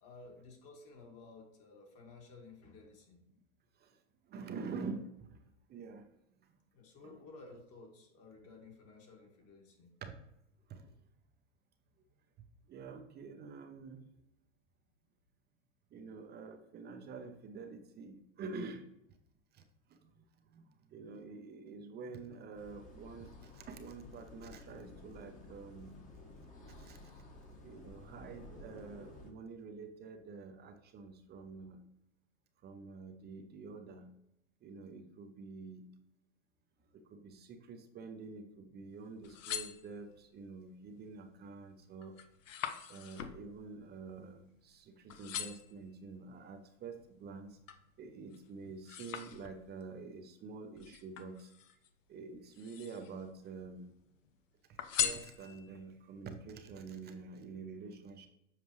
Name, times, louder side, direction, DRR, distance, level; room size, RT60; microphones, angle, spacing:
voice 1, 0.0-3.2 6.7-9.9, left 3 dB, 40° left, 1 dB, 1.9 m, -55 dB
voice 2, 4.3-5.4 5.7-6.1 7.0-7.2 10.0-10.1 10.7-10.9 12.7-14.1 15.9-18.9 19.5-19.6 19.9-20.1 20.5-20.6 20.9-25.9 26.8-27.0 27.6-31.8 32.6-34.1 34.6-35.9 36.9-42.1 42.9-47.6 48.0-51.5 52.1-53.9 54.7-58.3, right 4 dB, 25° right, 6 dB, 0.7 m, -47 dB
sound 1, 22.5-29.3, left 2 dB, 20° left, 1.3 m, -53 dB
sound 2, 39.1-40.4 40.9-41.3 41.7-44.8 45.1-45.8 46.4-47.9 48.3-49.9 50.8-51.9 52.4-53.2 53.6-54.3 54.8-55.8 56.4-56.5, left 9 dB, 90° left, 0.8 m, -41 dB
7.4 x 5.0 x 3.1 m, 0.82 s
hypercardioid pair, 120°, 37 cm